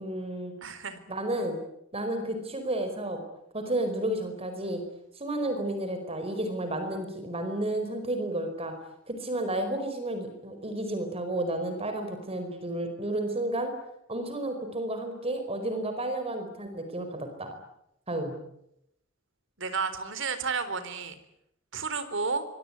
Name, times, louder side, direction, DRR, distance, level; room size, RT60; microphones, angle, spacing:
voice 1, 0.0-0.5 1.1-1.6 1.9-3.2 3.5-4.8 5.1-8.7 9.1-13.7 14.1-17.6 18.1-18.4, right 1 dB, 30° right, 7 dB, 4.8 m, -32 dB
voice 2, 0.6-1.0 19.6-21.1 21.7-22.4, right 4 dB, 65° right, 11 dB, 3.9 m, -31 dB
25.5 x 23.5 x 9.7 m, 0.80 s
head